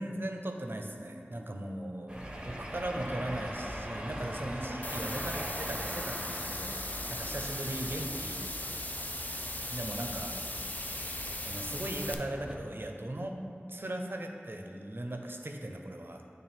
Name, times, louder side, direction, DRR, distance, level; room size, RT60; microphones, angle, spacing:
voice 1, 0.0-6.8 7.1-8.3 8.6-8.7 9.7-10.3 11.5-13.4 13.7-16.2, right 1 dB, 55° right, 3 dB, 0.6 m, -38 dB
sound 1, 2.1-12.6, equal, 20° right, 0.8 m, -41 dB
sound 2, 4.8-12.1, left 1 dB, 40° left, 0.5 m, -38 dB
8.7 x 3.3 x 4.3 m, 2.6 s
wide cardioid pair, 40°, 4 cm